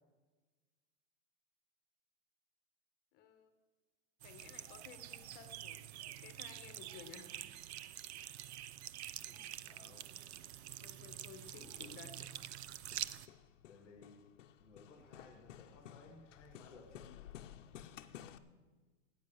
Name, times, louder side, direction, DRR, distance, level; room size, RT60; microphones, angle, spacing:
voice 1, 3.1-3.5 4.2-7.6 10.8-12.2, left 7 dB, 25° left, 9 dB, 1.3 m, -56 dB
sound 1, 4.2-13.3, right 12 dB, 55° right, 0.6 m, -47 dB
voice 2, 9.2-10.3 13.7-14.2 14.6-16.9, left 3 dB, ahead, -9 dB, 0.3 m, -60 dB
Hammer, 10.8-18.4, left 10 dB, 70° left, 0.9 m, -56 dB
14.0 x 9.6 x 6.5 m, 1.3 s
supercardioid pair, 155°, 39 cm